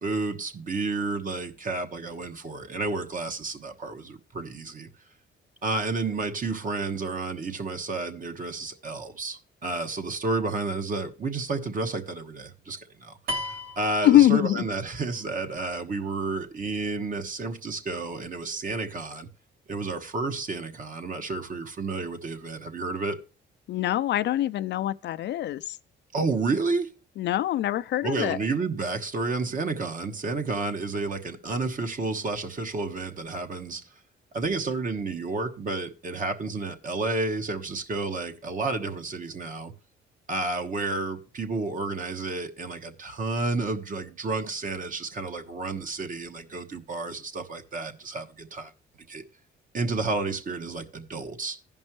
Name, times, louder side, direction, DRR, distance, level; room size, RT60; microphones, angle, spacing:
voice 1, 0.0-4.9 5.6-19.3 19.7-23.2 26.1-26.9 28.0-33.8 34.3-39.7 40.3-48.7 49.1-49.2 49.7-51.6, right 3 dB, 40° right, 1.2 m, -31 dB
sound 1, 13.3-15.0, left 1 dB, 85° right, 1.4 m, -35 dB
voice 2, 14.0-14.6 23.7-25.8 27.2-28.4, left 13 dB, 65° left, 0.4 m, -23 dB
15.5 x 5.3 x 3.1 m
cardioid pair, 90°, 20 cm